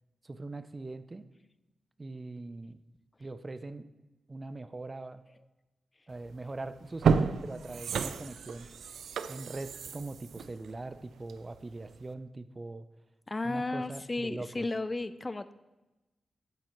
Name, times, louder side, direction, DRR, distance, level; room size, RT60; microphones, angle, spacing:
voice 1, 0.2-1.3 2.0-2.8 3.2-3.9 4.3-5.2 6.1-8.7 9.3-12.8 13.4-14.6, right 2 dB, 35° right, 12 dB, 0.6 m, -41 dB
sound 1, 6.2-6.4 6.9-11.6 12.0-12.1, right 6 dB, 85° right, 0.3 m, -31 dB
voice 2, 13.3-15.5, left 2 dB, 30° left, 14 dB, 0.5 m, -33 dB
12.0 x 7.7 x 3.1 m, 1.1 s
cardioid pair, 50°, 0 cm